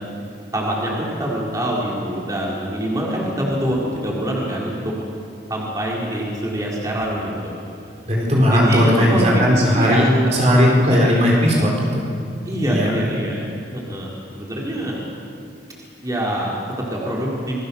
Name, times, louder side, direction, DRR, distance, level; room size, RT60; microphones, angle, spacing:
voice 1, 0.5-4.9 5.5-7.5 8.5-9.5 9.7-11.0 11.5-11.7 12.5-13.5 13.7-15.0 16.0-17.5, right 1 dB, 20° right, -4 dB, 4.3 m, -24 dB
voice 2, 8.1-12.1 12.6-12.9, equal, 35° right, -2 dB, 4.5 m, -17 dB
28.0 x 22.0 x 7.2 m, 2.5 s
head